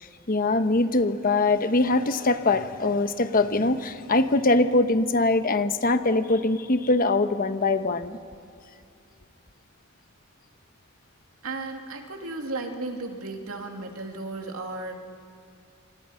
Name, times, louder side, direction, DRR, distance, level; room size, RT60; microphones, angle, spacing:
voice 1, 0.3-8.2, left 2 dB, 40° left, 9 dB, 1.0 m, -22 dB
voice 2, 11.4-14.9, right 3 dB, 80° right, 3 dB, 2.7 m, -34 dB
27.5 x 25.0 x 5.8 m, 2.5 s
head